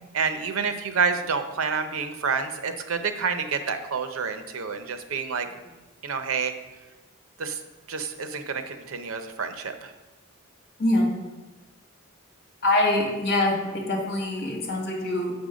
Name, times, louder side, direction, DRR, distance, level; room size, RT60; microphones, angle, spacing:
voice 1, 0.1-5.5 6.0-6.5 7.4-7.6 7.9-9.9, right 5 dB, 90° right, 8 dB, 0.7 m, -28 dB
voice 2, 12.6-15.3, left 1 dB, 50° left, -1 dB, 1.8 m, -24 dB
6.9 x 5.3 x 5.1 m, 1.1 s
head